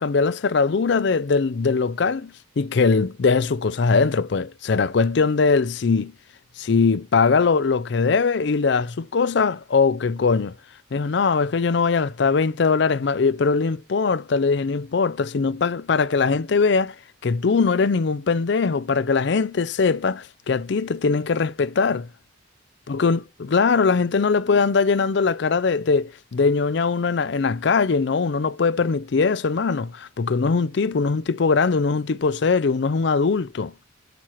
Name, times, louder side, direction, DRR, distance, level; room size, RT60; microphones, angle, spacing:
voice 1, 0.0-6.1 6.6-10.5 10.9-17.0 17.2-22.1 22.9-23.2 23.5-33.7, left 4 dB, 60° left, 0.4 m, -21 dB
9.4 x 4.5 x 5.7 m
head